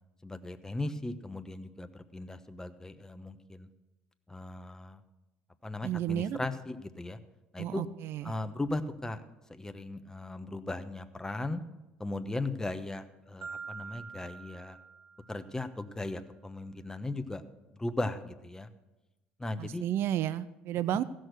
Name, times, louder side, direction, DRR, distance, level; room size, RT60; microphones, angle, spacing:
voice 1, 0.2-3.7 4.3-5.0 5.6-7.2 7.5-7.8 8.2-9.2 9.5-11.6 12.0-14.8 15.3-17.4 17.8-18.7 19.4-19.8, left 2 dB, 10° left, 9 dB, 1.0 m, -37 dB
voice 2, 5.8-6.4 7.6-8.3 19.6-21.0, right 11 dB, 60° right, 16 dB, 0.4 m, -32 dB
Marimba xylophone, 13.4-15.6, right 5 dB, 45° right, 0.8 m, -45 dB
15.5 x 6.3 x 6.5 m, 1.0 s
hypercardioid pair, 70°, 5 cm